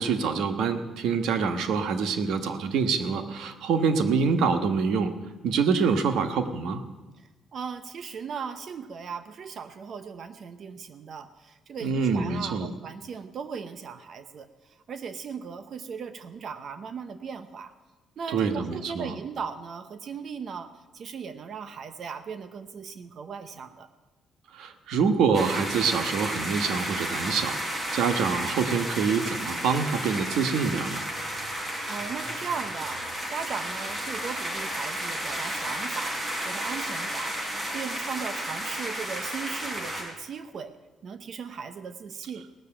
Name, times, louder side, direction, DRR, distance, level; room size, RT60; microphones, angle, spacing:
voice 1, 0.0-5.1 5.4-6.8 11.8-12.7 18.3-19.1 24.5-31.0, right 5 dB, 80° right, 8 dB, 1.2 m, -26 dB
voice 2, 7.5-14.5 14.9-17.7 18.2-23.9 31.9-36.2 36.4-37.3 37.7-40.7 41.0-42.5, right 6 dB, 60° right, 11 dB, 0.9 m, -37 dB
sound 1, 25.3-40.0, right 1 dB, 35° right, 4.9 m, -32 dB
17.5 x 6.9 x 8.8 m, 1.2 s
cardioid pair, 90°, 0 cm